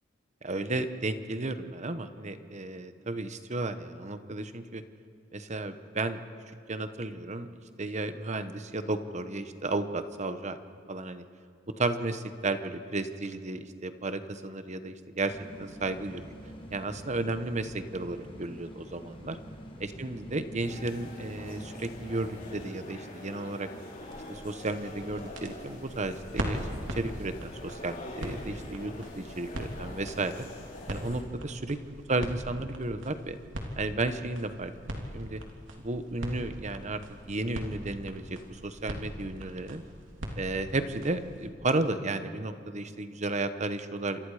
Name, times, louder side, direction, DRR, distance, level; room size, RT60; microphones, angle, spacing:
voice 1, 0.4-4.8 5.3-6.2 6.7-7.5 7.8-10.6 10.9-11.2 11.7-16.2 16.7-19.4 19.8-23.7 24.3-30.5 30.9-31.8 32.1-33.4 33.8-35.4 35.8-37.0 37.3-39.8 40.4-44.2, right 2 dB, 40° right, 10 dB, 1.1 m, -33 dB
sound 1, 15.2-22.7, equal, 30° left, 3.6 m, -47 dB
sound 2, 20.6-31.2, left 2 dB, 45° left, 5.2 m, -45 dB
sound 3, 24.0-41.5, equal, 85° right, 3.2 m, -41 dB
29.5 x 27.0 x 5.0 m, 2.4 s
head